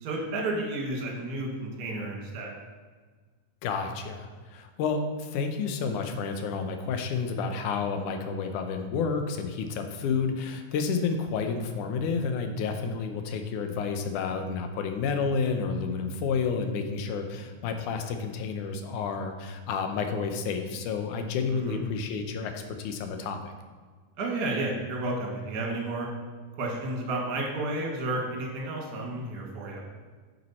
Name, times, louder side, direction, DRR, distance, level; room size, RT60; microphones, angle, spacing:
voice 1, 0.0-2.5 21.5-21.8 24.2-26.1 26.6-29.8, right 2 dB, 40° right, -1 dB, 1.7 m, -32 dB
voice 2, 3.6-23.5, left 5 dB, 75° left, 6 dB, 2.1 m, -30 dB
9.1 x 6.2 x 4.2 m, 1.5 s
omnidirectional pair, 3.8 m